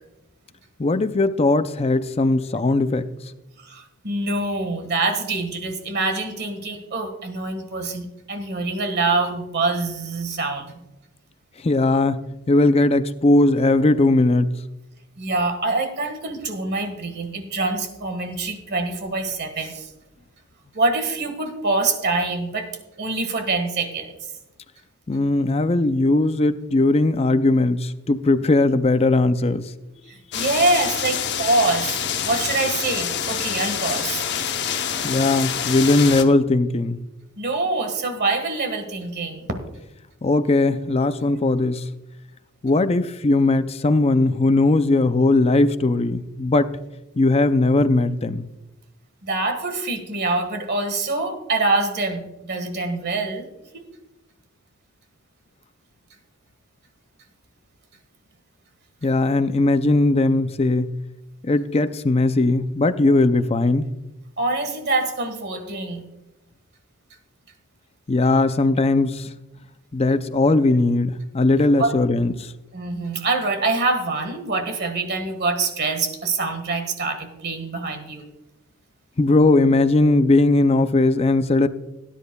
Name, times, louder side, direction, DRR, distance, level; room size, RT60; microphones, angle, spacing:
voice 1, 0.8-3.1 11.6-14.5 25.1-29.6 35.0-37.0 40.2-41.8 42.6-46.7 47.2-48.4 59.0-60.9 61.4-63.9 68.1-69.3 69.9-72.5 79.2-81.7, left 2 dB, 30° left, 11 dB, 0.5 m, -19 dB
voice 2, 3.6-10.8 15.2-19.9 20.7-22.7 23.0-24.1 30.1-34.2 37.4-39.5 49.2-53.5 53.7-53.8 64.4-66.0 71.8-71.9 72.7-78.2, right 3 dB, 50° right, 6 dB, 1.6 m, -25 dB
sound 1, 30.3-36.2, left 8 dB, 50° left, 0.9 m, -26 dB
18.0 x 10.0 x 2.3 m, 0.97 s
head